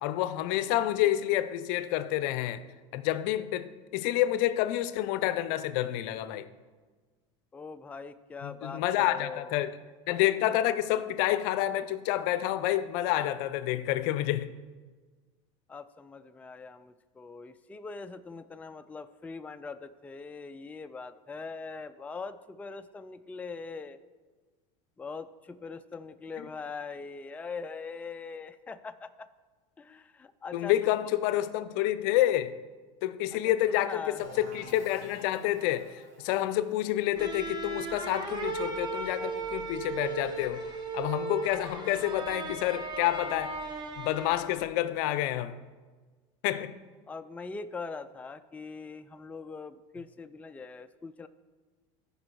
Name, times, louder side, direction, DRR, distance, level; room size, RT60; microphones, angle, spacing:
voice 1, 0.0-2.6 2.9-6.5 8.4-9.7 10.1-14.5 30.5-32.6 33.0-40.7 40.9-43.6 44.0-45.6 46.4-46.7, left 13 dB, 70° left, 0.6 m, -28 dB
voice 2, 7.5-9.6 15.7-24.0 25.0-29.3 29.8-31.0 33.3-34.2 47.1-51.3, left 4 dB, 10° left, 0.3 m, -42 dB
sound 1, 34.2-39.8, right 1 dB, 55° right, 2.8 m, -52 dB
sound 2, 37.2-44.7, right 3 dB, 25° right, 1.4 m, -36 dB
14.0 x 5.4 x 4.6 m
supercardioid pair, 115°, 16 cm